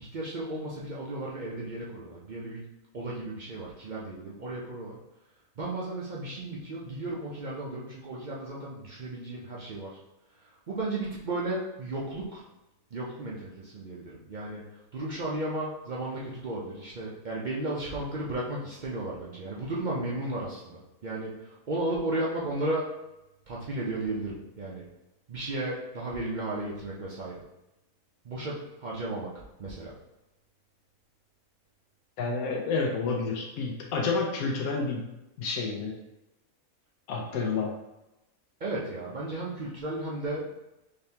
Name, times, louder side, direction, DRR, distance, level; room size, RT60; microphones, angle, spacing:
voice 1, 0.0-2.6 2.9-5.0 5.6-10.0 10.4-12.4 12.9-14.6 14.9-22.9 23.5-24.8 25.3-27.3 28.2-29.3 29.6-29.9 38.6-40.5, right 2 dB, 60° right, -5 dB, 0.5 m, -34 dB
voice 2, 32.2-35.1 35.4-36.0 37.1-37.7, left 4 dB, 85° left, 0 dB, 1.1 m, -29 dB
3.9 x 3.3 x 2.8 m, 0.92 s
omnidirectional pair, 1.5 m